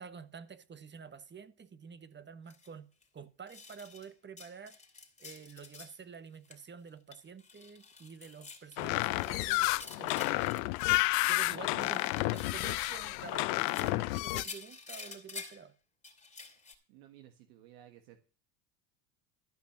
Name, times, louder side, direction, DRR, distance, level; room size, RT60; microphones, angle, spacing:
voice 1, 0.0-2.9 3.1-4.8 5.2-10.7 11.3-15.7, right 6 dB, 20° right, 1.2 m, -49 dB
sound 1, 2.5-2.7 3.0-3.1 3.5-4.1 4.4-6.0 6.3-6.6 6.9-11.4 11.7-13.0 13.5-15.6 16.0-16.7, left 4 dB, 15° left, 3.1 m, -49 dB
sound 2, 8.8-14.4, left 23 dB, 70° left, 0.6 m, -30 dB
voice 2, 16.9-18.2, right 12 dB, 75° right, 1.7 m, -56 dB
13.0 x 5.7 x 7.3 m
supercardioid pair, 95°, 49 cm